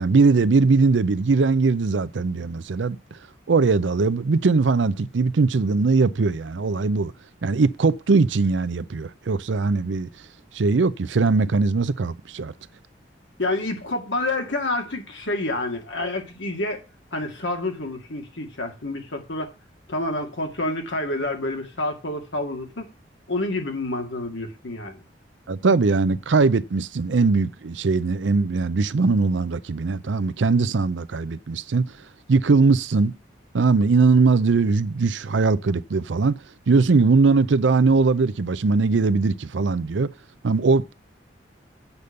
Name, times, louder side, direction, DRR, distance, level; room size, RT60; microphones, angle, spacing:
voice 1, 0.0-3.0 3.5-7.1 7.4-10.1 10.5-12.5 25.5-31.9 32.3-33.1 33.5-36.4 36.7-40.1 40.4-40.9, right 4 dB, 85° right, 0.5 m, -20 dB
voice 2, 13.4-16.8 17.1-19.5 19.9-22.9 23.3-25.0, left 2 dB, 85° left, 2.1 m, -28 dB
8.2 x 5.3 x 6.8 m
head